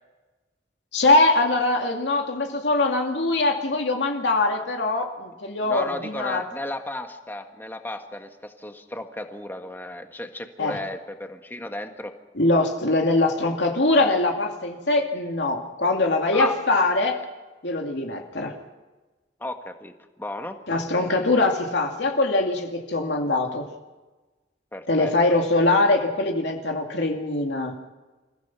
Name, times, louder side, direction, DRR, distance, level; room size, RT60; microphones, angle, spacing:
voice 1, 0.9-6.4 10.6-10.8 12.4-17.2 17.6-18.5 20.7-23.7 24.9-27.7, left 2 dB, 70° left, 2 dB, 2.5 m, -22 dB
voice 2, 5.6-12.1 16.3-16.6 19.4-19.9 20.2-20.6 24.7-25.4, left 1 dB, 10° left, 5 dB, 1.6 m, -34 dB
28.0 x 15.5 x 6.1 m, 1.2 s
head